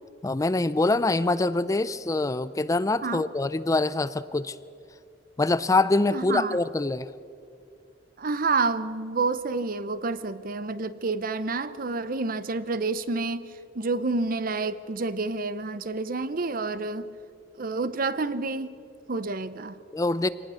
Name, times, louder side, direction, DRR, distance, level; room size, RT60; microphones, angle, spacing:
voice 1, 0.2-4.6 5.4-7.1 19.9-20.3, left 2 dB, 20° left, 15 dB, 0.4 m, -24 dB
voice 2, 6.1-6.6 8.2-13.5 13.7-17.1 17.6-18.7 19.1-19.7, right 3 dB, 50° right, 14 dB, 0.8 m, -29 dB
24.0 x 19.0 x 6.3 m, 2.5 s
head